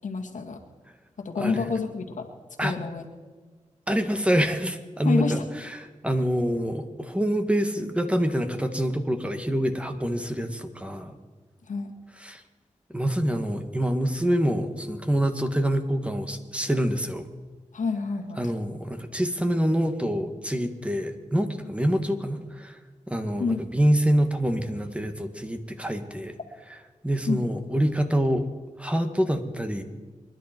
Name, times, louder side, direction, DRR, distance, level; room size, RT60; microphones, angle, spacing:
voice 1, 0.0-0.6 1.2-2.3 2.6-3.1 5.0-5.5 11.7-11.9 17.7-18.5 23.4-23.6 27.3-27.4, left 4 dB, 75° left, 3 dB, 1.9 m, -28 dB
voice 2, 1.4-1.7 2.6-2.8 3.9-11.2 12.2-12.4 12.9-17.3 18.4-22.8 23.1-26.3 27.0-28.5 28.8-29.8, equal, 10° right, 6 dB, 2.0 m, -26 dB
25.5 x 11.0 x 4.6 m, 1.4 s
cardioid pair, 45°, 13 cm